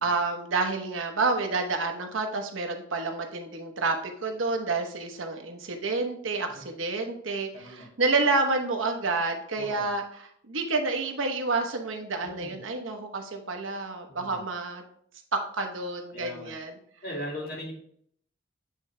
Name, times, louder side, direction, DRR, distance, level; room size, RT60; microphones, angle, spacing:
voice 1, 0.0-14.8 15.3-16.8, right 3 dB, 80° right, 4 dB, 1.0 m, -29 dB
voice 2, 7.5-7.9 9.6-9.9 12.2-12.6 14.1-14.4 16.1-16.5 17.0-17.7, equal, 50° left, -3 dB, 2.3 m, -39 dB
8.4 x 3.7 x 3.3 m, 0.64 s
head